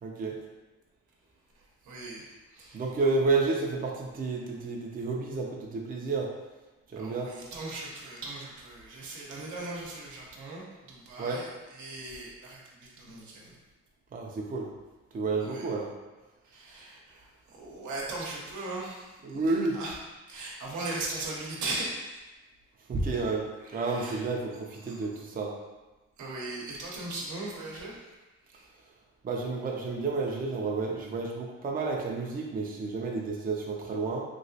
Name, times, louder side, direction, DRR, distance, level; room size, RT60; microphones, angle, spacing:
voice 1, 0.0-0.3 2.7-6.3 6.9-7.3 11.2-11.4 14.1-14.7 15.1-15.9 19.2-19.8 22.9-23.5 23.7-25.5 29.2-34.2, right 3 dB, 30° right, -1 dB, 0.5 m, -30 dB
voice 2, 1.8-2.8 7.0-13.6 15.4-15.7 16.4-19.4 19.7-19.9 20.3-22.0 23.6-24.2 24.8-25.1 26.2-28.0 28.5-28.7, right 2 dB, 75° right, -3 dB, 0.9 m, -39 dB
3.0 x 2.7 x 2.7 m, 1.2 s
cardioid pair, 90°, 30 cm